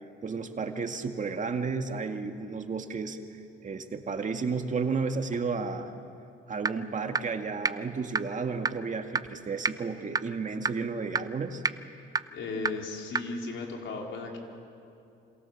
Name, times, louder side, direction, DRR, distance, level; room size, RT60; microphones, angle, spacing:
voice 1, 0.2-5.9 6.5-11.6, right 4 dB, 40° right, 5 dB, 2.1 m, -32 dB
sound 1, 6.7-6.8 7.1-7.2 7.7-7.8 8.2-8.3 8.7-8.8 9.2-9.3 9.6-9.7 10.2-10.3 10.7-10.8 11.2-11.3 11.6-11.7 12.2-12.3 12.7-12.8 13.2-13.3, right 4 dB, 20° right, 0.7 m, -25 dB
voice 2, 12.3-14.4, left 3 dB, 75° left, 1 dB, 4.4 m, -36 dB
28.0 x 26.5 x 7.2 m, 2.6 s
cardioid pair, 90°, 20 cm